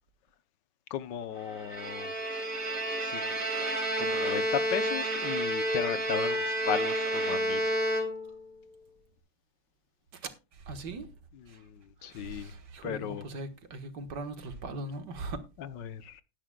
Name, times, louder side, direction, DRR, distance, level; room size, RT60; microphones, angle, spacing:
voice 1, 0.9-2.1 3.0-3.4 4.0-7.7 11.3-12.5 12.8-13.4 15.6-16.2, left 9 dB, 75° left, 1.4 m, -36 dB
Bowed string instrument, 1.5-8.5, right 1 dB, 45° right, 2.6 m, -30 dB
voice 2, 10.7-11.1 12.1-15.4, right 2 dB, 65° right, 2.0 m, -39 dB
18.5 x 10.0 x 2.2 m
omnidirectional pair, 2.0 m